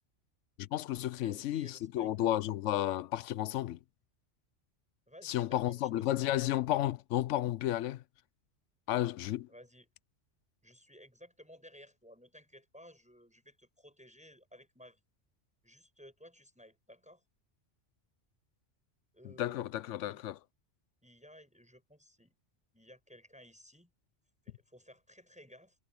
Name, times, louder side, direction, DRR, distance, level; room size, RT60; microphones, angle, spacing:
voice 1, 0.6-3.8 5.2-8.0 8.9-9.5 19.4-20.3, left 13 dB, 80° left, 0.9 m, -32 dB
voice 2, 1.2-2.1 5.1-6.3 9.5-9.9 10.6-15.0 15.6-17.2 19.1-20.2 21.0-22.3 22.7-23.9 24.4-25.7, equal, 5° right, 6.4 m, -56 dB
omnidirectional pair, 1.2 m